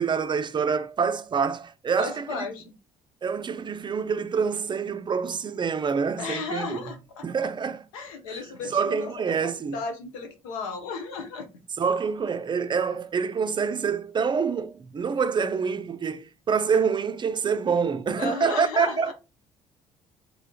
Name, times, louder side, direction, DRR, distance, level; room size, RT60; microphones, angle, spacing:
voice 1, 0.0-2.5 3.2-6.9 7.2-7.8 8.3-8.4 8.7-9.8 11.8-19.1, right 6 dB, 30° right, 0.5 m, -26 dB
voice 2, 2.0-2.7 6.2-7.3 7.9-9.1 9.4-11.5 18.2-19.1, left 4 dB, 85° left, 0.7 m, -34 dB
3.7 x 3.4 x 2.2 m
hypercardioid pair, 55°, 17 cm